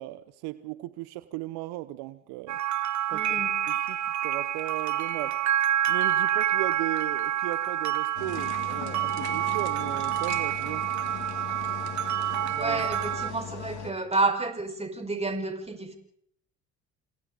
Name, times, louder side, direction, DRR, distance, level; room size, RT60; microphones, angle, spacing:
voice 1, 0.0-2.6 3.1-3.4 3.7-4.0 4.2-5.4 5.9-10.9 12.5-12.8, right 17 dB, 75° right, 14 dB, 1.0 m, -36 dB
sound 1, 2.5-13.3, right 12 dB, 50° right, 1.0 m, -28 dB
voice 2, 3.1-3.6 12.4-16.0, right 3 dB, 15° right, 5 dB, 5.4 m, -30 dB
sound 2, 8.2-13.9, left 9 dB, 70° left, 3.3 m, -39 dB
29.0 x 27.5 x 4.0 m, 0.67 s
hypercardioid pair, 60°, 38 cm